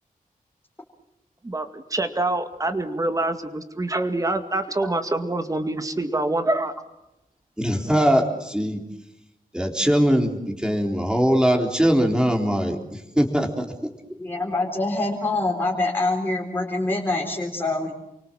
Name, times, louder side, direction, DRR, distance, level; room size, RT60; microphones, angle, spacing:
voice 1, 1.4-6.7, right 2 dB, 25° right, 8 dB, 2.1 m, -25 dB
voice 2, 7.6-8.8 9.5-13.7, equal, 5° right, 2 dB, 3.7 m, -21 dB
voice 3, 14.2-17.9, left 2 dB, 15° left, -1 dB, 3.9 m, -25 dB
29.0 x 24.5 x 7.6 m, 0.88 s
wide cardioid pair, 175°, 15 cm